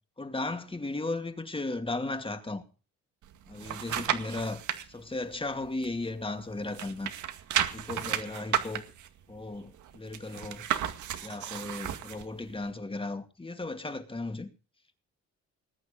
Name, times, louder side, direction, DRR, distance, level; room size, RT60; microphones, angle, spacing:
voice 1, 0.2-2.6 3.5-4.6 4.9-7.1 7.7-8.8 9.3-10.7 11.2-14.5, left 2 dB, 15° left, 2.4 m, -35 dB
sound 1, 3.2-4.8 5.3-6.4 6.7-12.2 12.7-12.8, right 10 dB, 75° right, 2.1 m, -33 dB
20.5 x 9.4 x 5.3 m
cardioid pair, 90°, 30 cm